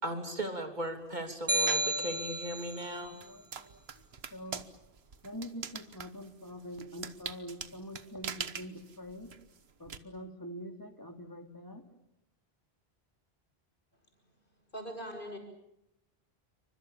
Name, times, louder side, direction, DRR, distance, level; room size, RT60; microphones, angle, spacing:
voice 1, 0.0-3.2, right 1 dB, 45° right, 5 dB, 3.5 m, -37 dB
sound 1, 1.5-2.9, right 1 dB, 20° right, 1.3 m, -31 dB
sound 2, 1.7-2.0 2.6-10.0, right 6 dB, 80° right, 1.5 m, -43 dB
voice 2, 3.1-3.8 4.3-4.6 5.2-9.3 9.8-11.9, equal, 20° left, 5 dB, 2.9 m, -45 dB
voice 3, 14.7-15.4, equal, 55° left, 4 dB, 6.8 m, -40 dB
28.5 x 25.0 x 7.3 m, 0.85 s
omnidirectional pair, 1.0 m